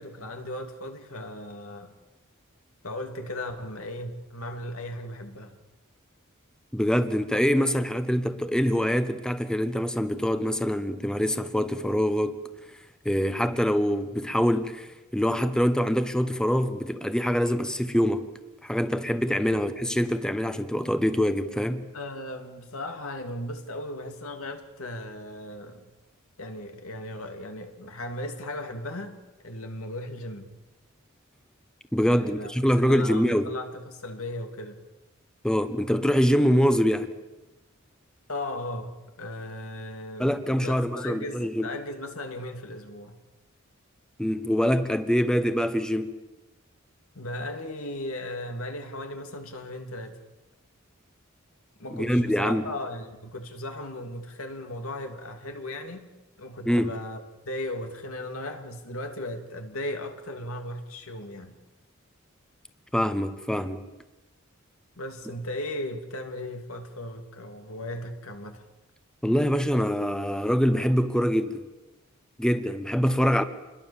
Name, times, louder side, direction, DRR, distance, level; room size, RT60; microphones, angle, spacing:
voice 1, 0.0-1.9 2.8-5.6 19.5-19.6 21.9-25.9 26.4-29.2 29.4-30.5 32.0-32.5 32.8-34.8 38.3-43.2 47.1-50.2 51.8-56.1 56.4-61.6 65.0-68.6, left 1 dB, 85° left, 2.8 m, -36 dB
voice 2, 6.7-12.4 13.0-14.9 15.1-18.3 18.6-21.8 31.9-33.5 35.4-37.1 40.2-41.7 44.2-46.1 51.9-52.6 56.7-56.9 62.9-63.9 69.2-71.7 72.4-73.4, equal, 5° left, 1.0 m, -24 dB
27.5 x 21.5 x 7.3 m
head